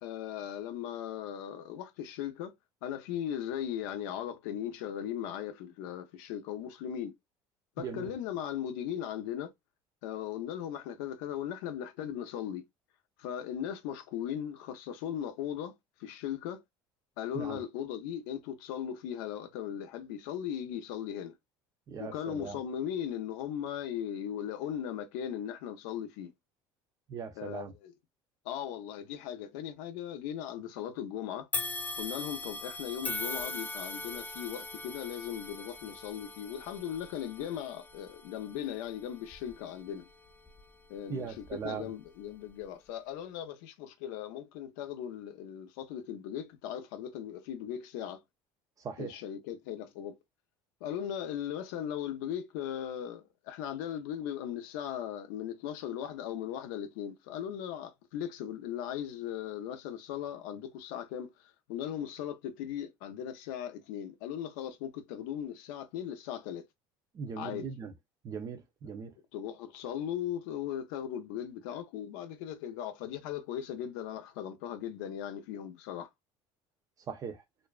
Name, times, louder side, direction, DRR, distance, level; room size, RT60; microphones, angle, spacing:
voice 1, 0.0-2.5 2.8-7.1 7.8-9.5 10.0-12.6 13.2-15.7 16.0-16.6 17.2-21.3 22.0-26.3 27.4-27.7 28.4-31.5 32.0-40.1 40.9-48.2 49.0-50.2 50.8-66.7 67.4-67.7 69.3-76.1, left 10 dB, 90° left, 0.5 m, -38 dB
voice 2, 7.8-8.1 17.3-17.6 21.9-22.6 27.1-27.7 41.1-41.9 48.8-49.1 67.1-67.9 68.2-69.1 77.1-77.4, right 6 dB, 35° right, 0.6 m, -39 dB
sound 1, 31.5-40.8 41.3-41.5 42.5-42.6, left 2 dB, 15° left, 0.3 m, -41 dB
2.5 x 2.1 x 2.3 m
cardioid pair, 125°, 10 cm